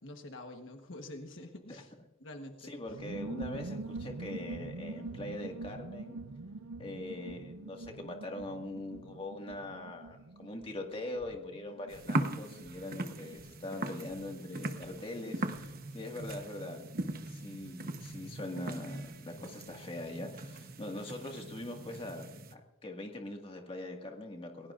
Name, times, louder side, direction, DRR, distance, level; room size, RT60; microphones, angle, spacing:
voice 1, 0.0-1.9 2.2-2.7, left 1 dB, 55° left, 4 dB, 1.3 m, -46 dB
voice 2, 2.6-6.2 6.8-24.7, left 1 dB, 25° left, 2 dB, 1.9 m, -42 dB
sound 1, 2.9-19.2 19.4-19.5 19.7-20.2, right 3 dB, 75° right, 0.6 m, -46 dB
sound 2, 11.9-22.5, right 2 dB, 40° right, 1.0 m, -40 dB
28.5 x 17.0 x 2.5 m, 1.0 s
head